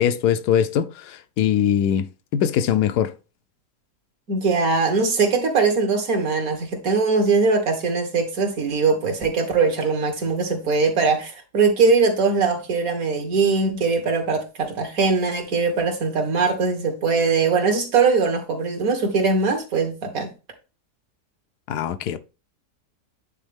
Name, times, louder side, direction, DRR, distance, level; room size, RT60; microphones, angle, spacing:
voice 1, 0.0-2.1 2.3-3.1 21.7-22.2, left 9 dB, 80° left, 1.2 m, -21 dB
voice 2, 4.3-20.3, right 4 dB, 60° right, 1.8 m, -21 dB
9.1 x 4.0 x 3.4 m
omnidirectional pair, 1.7 m